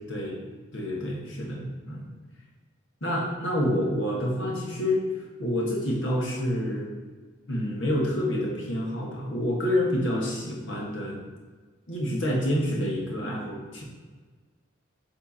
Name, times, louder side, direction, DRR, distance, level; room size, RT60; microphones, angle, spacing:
voice 1, 0.0-2.1 3.0-7.0 7.5-11.2 11.9-13.8, left 1 dB, 70° left, -2 dB, 1.5 m, -28 dB
7.2 x 3.6 x 4.2 m, 1.4 s
head